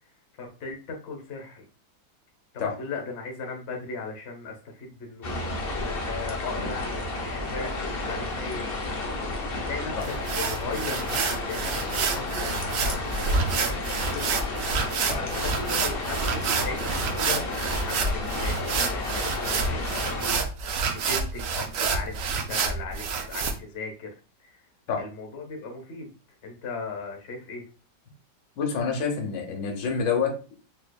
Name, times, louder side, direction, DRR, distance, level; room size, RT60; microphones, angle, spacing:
voice 1, 0.4-1.6 2.5-8.6 9.6-10.0 10.4-14.7 15.1-17.4 17.8-20.3 20.9-24.1 24.4-24.6 24.9-26.1 26.4-27.6, left 4 dB, 45° left, 2 dB, 0.9 m, -38 dB
River Maira - Riverside, 5.2-20.4, left 2 dB, 65° left, 0.5 m, -32 dB
sound 1, 10.0-23.5, right 5 dB, 75° right, 0.7 m, -28 dB
voice 2, 28.6-30.5, left 5 dB, 90° left, 2 dB, 1.6 m, -27 dB
4.3 x 2.8 x 2.2 m, 0.36 s
omnidirectional pair, 2.0 m